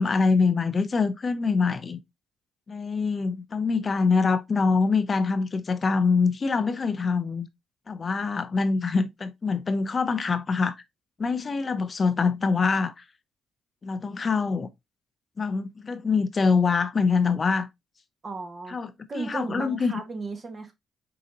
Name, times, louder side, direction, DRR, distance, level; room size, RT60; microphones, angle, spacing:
voice 1, 0.0-2.0 2.7-7.5 7.9-10.7 11.2-13.0 13.8-14.7 15.4-17.7 18.7-19.9, left 4 dB, 35° left, 0.5 m, -24 dB
voice 2, 18.2-18.8 19.1-20.7, right 3 dB, 35° right, 1.4 m, -35 dB
5.1 x 3.8 x 2.7 m
cardioid pair, 90°, 0 cm